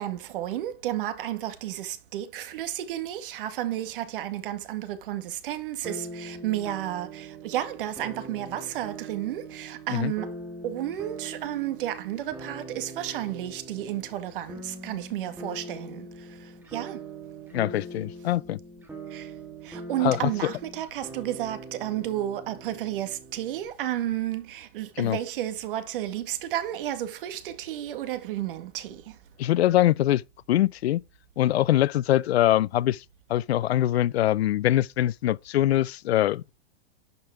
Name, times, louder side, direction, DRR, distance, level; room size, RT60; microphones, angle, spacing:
voice 1, 0.0-7.1 7.4-10.3 10.6-14.6 14.8-16.0 16.7-17.0 19.1-19.2 19.9-29.0, right 13 dB, 60° right, 1.9 m, -32 dB
sound 1, 5.8-23.7, right 2 dB, 5° right, 1.9 m, -42 dB
voice 2, 17.5-18.6 20.0-20.5 25.0-25.2 29.4-30.2 30.5-31.0 31.4-33.0 33.3-36.5, left 13 dB, 90° left, 0.5 m, -23 dB
11.5 x 5.4 x 4.7 m
hypercardioid pair, 150°, 31 cm